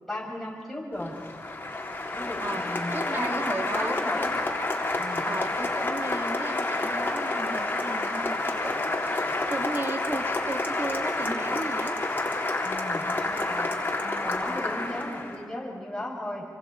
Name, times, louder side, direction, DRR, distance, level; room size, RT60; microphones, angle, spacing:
voice 1, 0.1-1.1 2.1-3.4 3.7-4.3 5.0-5.2 12.6-13.7 14.0-16.4, left 1 dB, 5° left, -4 dB, 7.9 m, -35 dB
Applause, 0.9-15.4, left 2 dB, 35° left, 3.4 m, -29 dB
voice 2, 2.9-3.9 5.3-9.2 9.5-12.0, right 2 dB, 35° right, 4 dB, 1.9 m, -35 dB
28.5 x 25.0 x 5.0 m, 2.4 s
wide cardioid pair, 75°, 6 cm